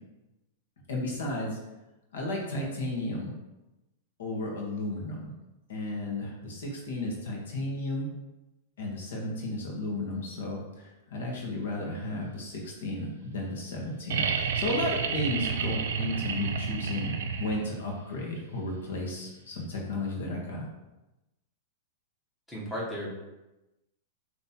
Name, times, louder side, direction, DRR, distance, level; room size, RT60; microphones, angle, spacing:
voice 1, 0.9-1.6 2.1-3.3 4.2-5.3 5.7-8.1 8.8-20.7, left 1 dB, 80° left, -1 dB, 1.2 m, -33 dB
sound 1, 14.1-17.9 19.6-19.7, right 6 dB, 70° right, 0.4 m, -30 dB
voice 2, 22.5-23.1, equal, 5° left, -5 dB, 1.0 m, -34 dB
5.3 x 2.9 x 2.8 m, 1.0 s
supercardioid pair, 150°, 0 cm